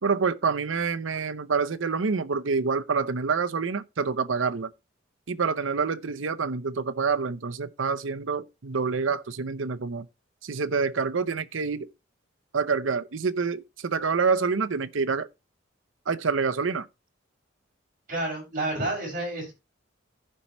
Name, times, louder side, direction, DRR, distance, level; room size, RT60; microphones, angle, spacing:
voice 1, 0.0-4.7 5.3-10.1 10.4-11.9 12.5-15.3 16.1-16.9, right 5 dB, 80° right, 0.7 m, -27 dB
voice 2, 18.1-19.5, right 2 dB, 45° right, 6.1 m, -30 dB
15.0 x 5.4 x 3.0 m
head